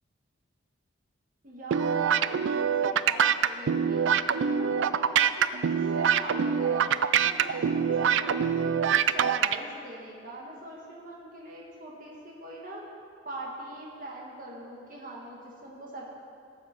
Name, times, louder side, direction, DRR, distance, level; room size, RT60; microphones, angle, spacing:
voice 1, 1.4-5.4 5.7-6.8 7.2-12.8 13.2-16.1, right 1 dB, 40° right, -3 dB, 2.1 m, -43 dB
sound 1, 1.7-9.6, right 7 dB, 70° right, 0.3 m, -24 dB
18.0 x 7.4 x 4.7 m, 2.3 s
head